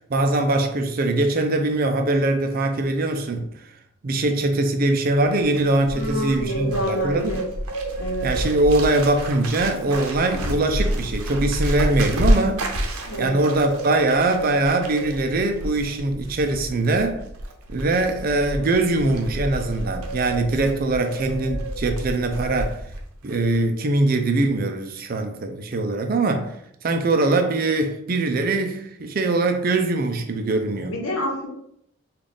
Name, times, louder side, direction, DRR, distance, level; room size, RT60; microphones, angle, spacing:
voice 1, 0.1-3.5 4.0-7.3 8.2-12.7 13.2-17.2 17.7-22.8 23.2-26.5 26.8-31.0, right 2 dB, 45° right, 0.4 m, -22 dB
Bird, 5.2-23.0 23.3-23.6, right 1 dB, 90° right, 0.7 m, -29 dB
voice 2, 5.9-7.5 8.0-8.3 13.0-13.4 30.8-31.5, left 1 dB, 70° left, 1.0 m, -28 dB
3.8 x 2.4 x 3.4 m
head